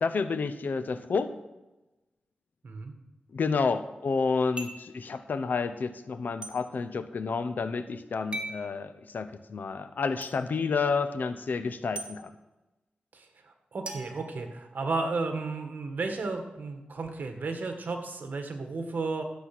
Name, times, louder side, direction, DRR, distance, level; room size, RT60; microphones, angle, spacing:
voice 1, 0.0-1.3 3.3-12.3, left 4 dB, 70° left, 10 dB, 0.8 m, -30 dB
voice 2, 2.6-3.0 13.1-19.2, right 3 dB, 65° right, 5 dB, 1.7 m, -33 dB
sound 1, 4.6-4.9 6.4-6.6 8.3-8.6 10.2-10.3 12.0-12.1 13.9-14.9, right 2 dB, 35° right, 1.7 m, -39 dB
12.5 x 7.7 x 6.0 m, 1.1 s
wide cardioid pair, 90°, 3 cm